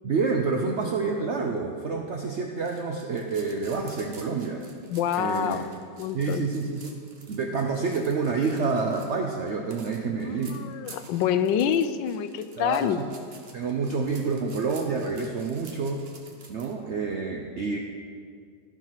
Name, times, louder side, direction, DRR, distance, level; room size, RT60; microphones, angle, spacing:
voice 1, 0.0-4.7 5.2-5.6 6.1-6.9 7.3-10.6 12.6-13.1 13.5-16.1 16.5-17.8, right 4 dB, 70° right, 2 dB, 0.6 m, -28 dB
sound 1, 2.6-16.7, right 4 dB, 40° right, 1.0 m, -50 dB
voice 2, 4.9-5.7 6.0-6.5 10.3-13.0, left 9 dB, 85° left, 11 dB, 1.3 m, -26 dB
13.5 x 4.5 x 5.7 m, 2.2 s
omnidirectional pair, 1.9 m